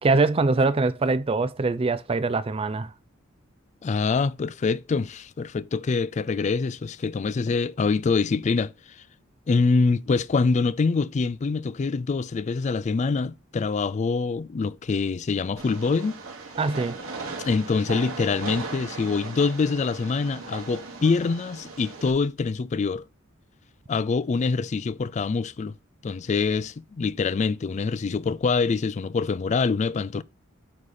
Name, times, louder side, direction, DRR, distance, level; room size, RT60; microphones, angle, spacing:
voice 1, 0.0-2.9 16.6-17.0, right 3 dB, 30° right, 0.4 m, -23 dB
voice 2, 3.8-8.7 9.5-16.2 17.4-23.0 23.9-25.7 26.0-30.2, left 4 dB, 35° left, 0.3 m, -25 dB
Train, 15.6-22.1, right 3 dB, 90° right, 2.3 m, -38 dB
8.6 x 4.2 x 4.9 m
head